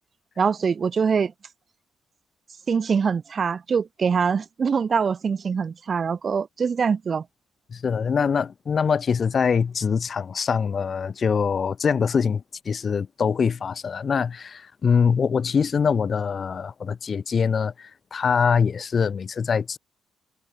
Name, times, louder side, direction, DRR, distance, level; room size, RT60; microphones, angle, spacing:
voice 1, 0.4-1.3 2.7-7.2, right 6 dB, 45° right, 2.1 m, -23 dB
voice 2, 7.7-19.8, left 6 dB, 45° left, 5.1 m, -23 dB
cardioid pair, 90°, 0 cm